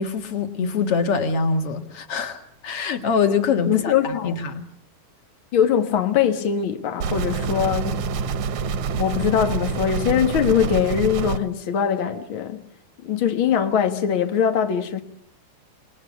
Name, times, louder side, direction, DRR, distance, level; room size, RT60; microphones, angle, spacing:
voice 1, 0.0-4.7, left 5 dB, 50° left, 2.1 m, -24 dB
voice 2, 3.7-4.3 5.5-8.0 8.9-12.6 13.0-15.0, left 8 dB, 75° left, 1.1 m, -22 dB
sound 1, 7.0-11.4, right 6 dB, 65° right, 2.1 m, -26 dB
27.5 x 20.5 x 8.3 m
omnidirectional pair, 4.5 m